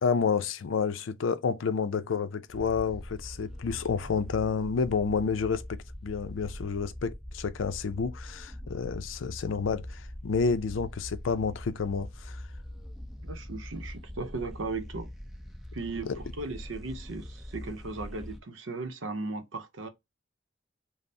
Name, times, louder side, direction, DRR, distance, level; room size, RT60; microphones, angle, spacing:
voice 1, 0.0-12.4 16.0-16.1, left 5 dB, 85° left, 0.5 m, -30 dB
sound 1, 2.5-18.4, left 1 dB, ahead, 0.6 m, -42 dB
voice 2, 13.2-15.1 15.7-19.9, right 3 dB, 85° right, 0.7 m, -37 dB
5.2 x 2.0 x 2.7 m
head